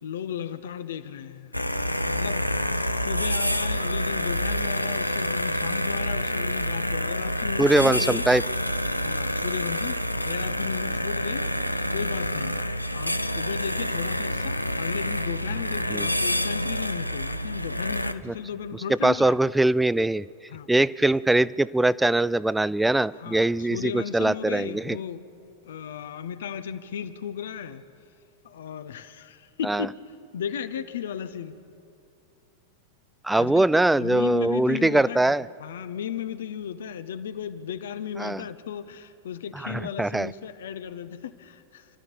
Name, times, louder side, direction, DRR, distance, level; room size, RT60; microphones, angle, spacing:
voice 1, 0.0-1.5 2.1-8.2 9.0-11.5 11.9-12.5 12.9-19.4 20.5-20.7 23.2-25.2 25.6-27.8 28.4-29.9 30.3-31.6 33.3-33.7 33.9-35.3 35.6-41.9, left 8 dB, 60° left, 11 dB, 1.0 m, -35 dB
sound 1, 1.5-18.1, equal, 90° left, 0.6 m, -28 dB
voice 2, 7.6-8.4 15.9-16.1 18.3-18.4 19.0-20.2 20.7-25.0 29.6-29.9 33.2-35.5 38.2-38.4 39.6-40.3, right 2 dB, 5° right, 20 dB, 0.4 m, -22 dB
29.0 x 13.0 x 7.2 m, 2.6 s
figure-of-eight pair, 90°, 0 cm